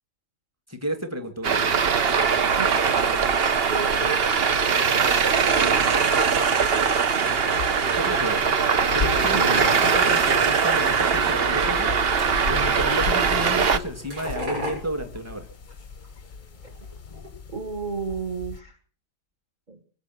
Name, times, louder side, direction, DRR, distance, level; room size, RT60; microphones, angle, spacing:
voice 1, 0.7-1.8 7.9-8.4 8.9-11.9 12.5-15.5, right 1 dB, 10° right, 6 dB, 2.3 m, -32 dB
Traffic noise roadway noise, 1.4-13.8, right 6 dB, 45° right, 0.9 m, -21 dB
voice 2, 2.6-2.9 3.6-4.8 5.3-6.1 9.3-9.7 17.5-18.7 19.7-19.8, right 4 dB, 25° right, 6 dB, 1.8 m, -33 dB
sound 1, 4.8-16.3 16.6-17.3, left 1 dB, 70° right, 7.7 m, -39 dB
sound 2, 5.4-18.6, left 4 dB, 35° left, 0.9 m, -38 dB
25.5 x 8.6 x 6.1 m, 0.42 s
omnidirectional pair, 1.8 m